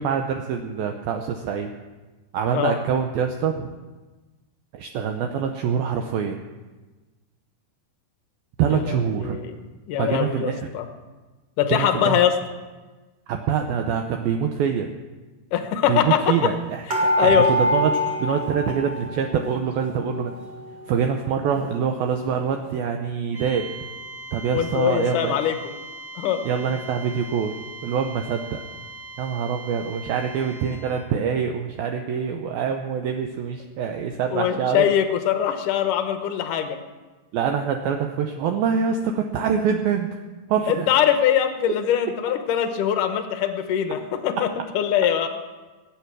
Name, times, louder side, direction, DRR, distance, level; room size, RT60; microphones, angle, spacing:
voice 1, 0.0-1.7 2.3-3.7 4.7-6.4 8.6-9.4 10.0-10.7 11.8-12.2 13.3-14.9 15.9-17.9 18.2-20.3 20.9-23.7 24.3-25.4 26.4-27.5 27.8-28.6 29.2-34.9 37.3-40.2 40.5-40.9, right 7 dB, 80° right, 4 dB, 2.2 m, -25 dB
voice 2, 8.7-9.6 9.9-10.9 11.6-12.4 15.5-16.5 16.9-17.5 24.5-25.6 26.2-26.4 34.3-36.8 40.7-44.5 44.7-45.3, left 10 dB, 75° left, 7 dB, 2.0 m, -22 dB
sound 1, 16.9-19.4 19.7-20.7 21.2-21.3 21.6-21.7, equal, 45° right, 1.4 m, -24 dB
sound 2, 23.3-31.0, right 2 dB, 25° right, 1.7 m, -40 dB
21.0 x 8.7 x 6.1 m, 1.2 s
omnidirectional pair, 5.1 m